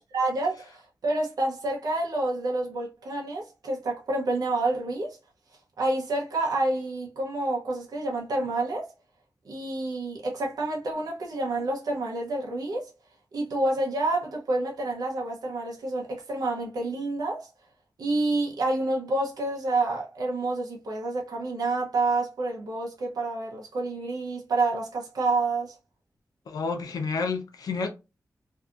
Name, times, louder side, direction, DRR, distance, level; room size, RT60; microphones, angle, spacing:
voice 1, 0.1-5.2 5.8-8.9 9.5-12.9 13.3-17.5 18.0-25.7, right 2 dB, 85° right, 0.7 m, -28 dB
voice 2, 26.5-27.9, left 4 dB, 90° left, 0.6 m, -30 dB
2.7 x 2.3 x 2.4 m
wide cardioid pair, 80°, 6 cm